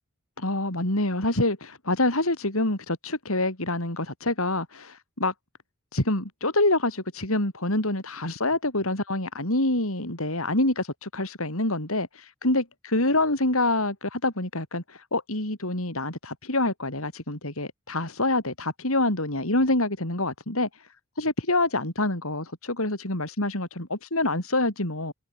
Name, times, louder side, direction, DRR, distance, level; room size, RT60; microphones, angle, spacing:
voice 1, 0.4-5.3 5.9-20.7 21.2-25.1, left 2 dB, 75° left, 5.8 m, -26 dB
head